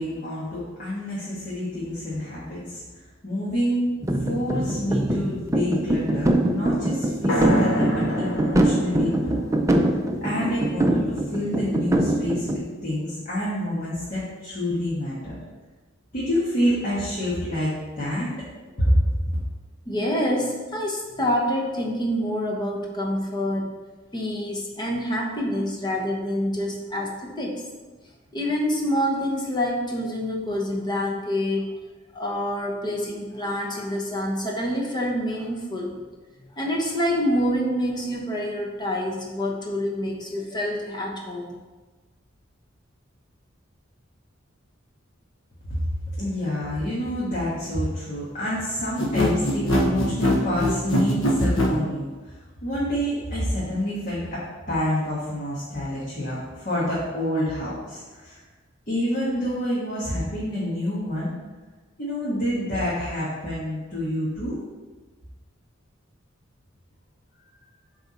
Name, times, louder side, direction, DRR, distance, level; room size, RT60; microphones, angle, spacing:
voice 1, 0.0-2.8 3.2-3.9 4.2-9.5 10.2-15.4 16.1-18.3 18.8-19.4 45.7-58.4 58.9-61.3 62.0-64.6, equal, 45° left, -8 dB, 1.5 m, -27 dB
sound 1, 4.0-12.6, right 1 dB, 15° right, 0.5 m, -23 dB
sound 2, 7.3-11.2, equal, 90° left, 1.6 m, -29 dB
voice 2, 19.9-23.8 24.1-27.6 28.3-31.7 32.1-35.9 36.5-41.6, equal, 20° left, 0 dB, 1.0 m, -27 dB
sound 3, 49.0-51.8, left 1 dB, 70° left, 1.1 m, -22 dB
7.6 x 3.5 x 4.3 m, 1.3 s
head